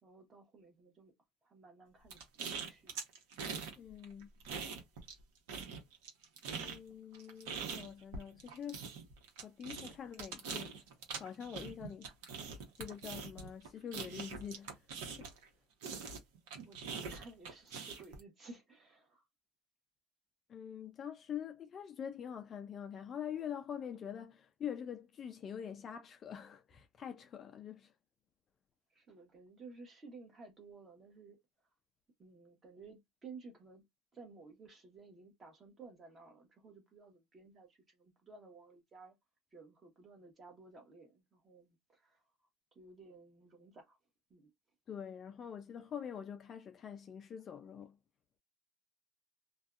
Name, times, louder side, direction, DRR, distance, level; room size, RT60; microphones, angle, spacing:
voice 1, 0.0-1.1 1.4-2.9 4.0-4.1 16.6-19.3 28.9-31.4 32.2-33.8 34.1-39.2 39.5-42.2 42.7-44.0 44.3-44.5, right 4 dB, 25° right, 1.0 m, -56 dB
sound 1, 2.1-3.7 4.0-5.2 5.5-15.5 15.8-18.2, right 5 dB, 80° right, 0.9 m, -43 dB
voice 2, 3.8-4.3 6.6-8.9 9.4-10.8 11.2-12.1 12.8-14.8 15.2-15.3 20.5-27.9 44.9-48.0, left 8 dB, 30° left, 0.3 m, -45 dB
2.6 x 2.2 x 2.3 m
cardioid pair, 150°, 0 cm